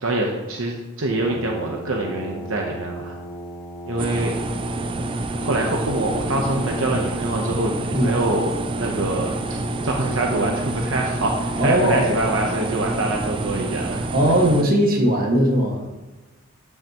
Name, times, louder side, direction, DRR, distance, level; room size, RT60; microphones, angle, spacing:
voice 1, 0.0-3.2 3.8-4.3 5.4-8.5 8.8-9.6 9.8-14.0, right 2 dB, 70° right, 1 dB, 0.9 m, -25 dB
Brass instrument, 1.2-13.5, right 1 dB, 60° left, 1.7 m, -37 dB
sound 1, 4.0-14.6, right 2 dB, 25° right, 0.3 m, -28 dB
voice 2, 11.6-12.1 14.1-15.9, equal, 45° right, -1 dB, 1.7 m, -18 dB
12.0 x 5.8 x 3.0 m, 1.1 s
head